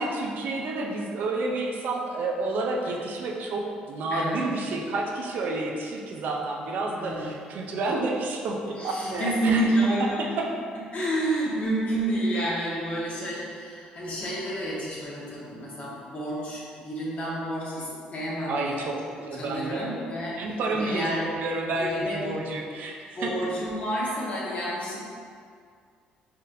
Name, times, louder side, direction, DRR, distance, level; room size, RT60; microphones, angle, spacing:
voice 1, 0.0-9.6 10.2-10.5 18.5-18.9 19.3-19.9 20.4-23.3, right 2 dB, 65° right, 0 dB, 0.6 m, -30 dB
voice 2, 4.1-4.4 7.0-7.3 8.8-10.4 10.9-18.9 19.4-21.3 21.7-22.2 23.1-25.0, right 1 dB, 45° left, -6 dB, 1.4 m, -29 dB
4.2 x 3.7 x 2.7 m, 2.2 s
supercardioid pair, 75°, 3 cm